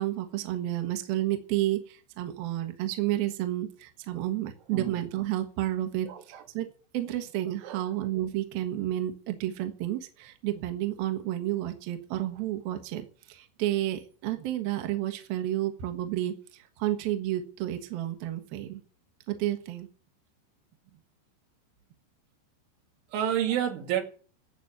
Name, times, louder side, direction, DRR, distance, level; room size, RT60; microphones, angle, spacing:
voice 1, 0.0-6.7 6.9-18.8 19.3-19.9, right 13 dB, 65° right, 2.9 m, -31 dB
voice 2, 6.1-6.4 7.6-7.8 23.1-24.0, right 10 dB, 85° right, 4.6 m, -30 dB
14.0 x 8.2 x 9.4 m
omnidirectional pair, 5.4 m